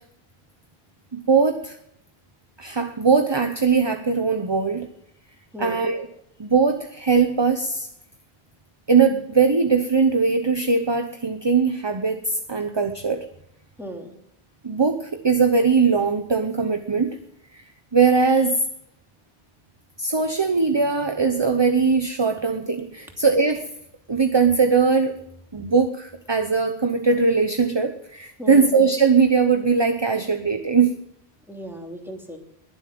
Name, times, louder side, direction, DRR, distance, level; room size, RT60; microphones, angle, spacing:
voice 1, 1.1-1.8 2.6-4.9 5.6-6.1 6.4-7.9 8.9-13.3 14.6-17.2 17.9-18.6 20.0-23.7 24.1-25.2 25.5-31.0, right 5 dB, 25° right, 8 dB, 0.9 m, -20 dB
voice 2, 5.5-5.9 13.8-14.1 28.4-28.7 31.5-32.4, equal, ahead, 2 dB, 2.8 m, -36 dB
21.5 x 7.7 x 7.7 m, 0.77 s
omnidirectional pair, 1.1 m